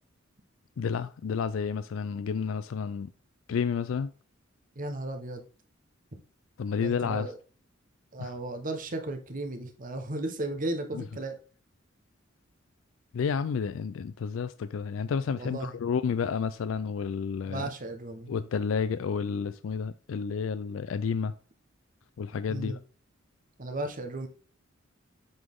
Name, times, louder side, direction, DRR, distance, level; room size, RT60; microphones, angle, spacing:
voice 1, 0.8-3.1 3.5-4.1 6.6-7.3 8.2-8.3 13.1-17.7 18.3-21.3 22.2-22.8, left 6 dB, 75° left, 0.4 m, -30 dB
voice 2, 4.7-5.5 6.8-7.4 8.1-11.4 15.3-15.8 17.4-18.3 22.5-22.8 23.6-24.3, right 2 dB, 45° right, 1.1 m, -35 dB
7.8 x 4.1 x 3.6 m
head